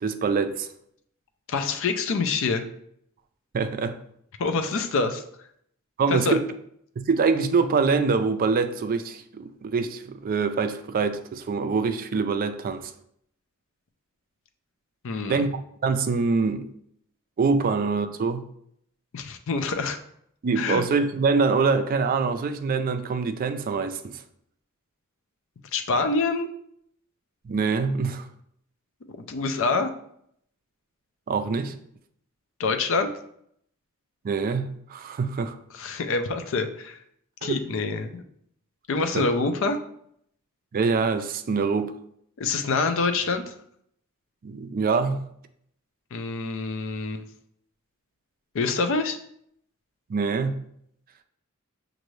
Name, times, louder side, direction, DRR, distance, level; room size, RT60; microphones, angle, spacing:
voice 1, 0.0-0.7 3.5-4.0 6.0-6.5 7.0-12.9 15.3-15.5 15.8-16.7 17.4-18.4 20.4-24.2 27.4-28.3 31.3-31.7 34.2-35.6 37.4-37.6 39.1-39.3 40.7-41.9 44.4-45.2 50.1-50.6, right 4 dB, 40° right, 0.3 m, -24 dB
voice 2, 1.5-2.6 4.4-5.2 6.1-6.4 15.0-15.4 19.1-20.0 20.6-20.8 25.7-26.5 29.2-29.9 32.6-33.1 35.7-37.0 37.4-38.2 38.9-39.8 42.4-43.5 46.1-47.2 48.5-49.2, left 4 dB, 65° left, 0.5 m, -26 dB
6.3 x 2.6 x 3.1 m
head